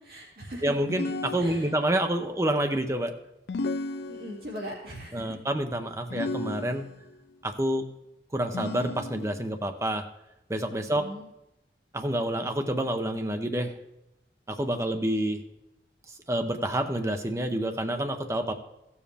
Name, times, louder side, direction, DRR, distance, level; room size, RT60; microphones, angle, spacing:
voice 1, 0.0-0.7 1.3-1.7 4.1-5.2 10.8-11.3, equal, 60° right, -3 dB, 2.5 m, -40 dB
voice 2, 0.6-3.2 5.1-6.9 7.4-7.9 8.3-10.1 10.5-11.1 11.9-13.8 14.5-15.4 16.3-18.5, right 1 dB, 15° right, 6 dB, 0.6 m, -28 dB
sound 1, 0.9-2.0 3.5-4.7 6.1-7.2 8.5-9.5, left 2 dB, 75° left, 0.4 m, -34 dB
15.0 x 7.1 x 3.4 m, 0.89 s
head